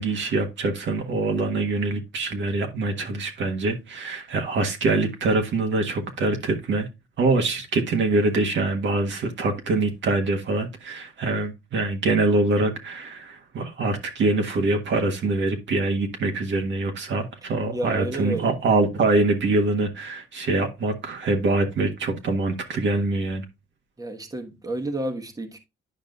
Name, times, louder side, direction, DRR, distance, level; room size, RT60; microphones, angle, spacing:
voice 1, 0.0-6.9 7.2-23.4, right 3 dB, 70° right, 1.6 m, -24 dB
voice 2, 17.7-18.5 24.0-25.6, right 1 dB, 20° right, 1.2 m, -30 dB
10.0 x 5.2 x 2.5 m
cardioid pair, 90°, 20 cm